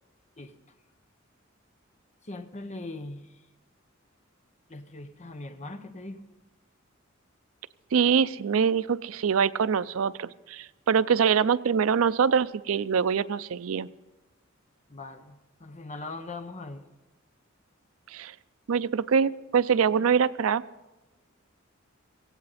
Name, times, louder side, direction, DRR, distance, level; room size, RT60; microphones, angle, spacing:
voice 1, 2.2-3.4 4.7-6.3 14.9-16.9, left 2 dB, 35° left, 9 dB, 0.9 m, -40 dB
voice 2, 7.9-13.9 18.1-18.4 18.7-20.6, right 6 dB, 90° right, 16 dB, 0.4 m, -24 dB
17.5 x 16.0 x 4.2 m, 1.1 s
head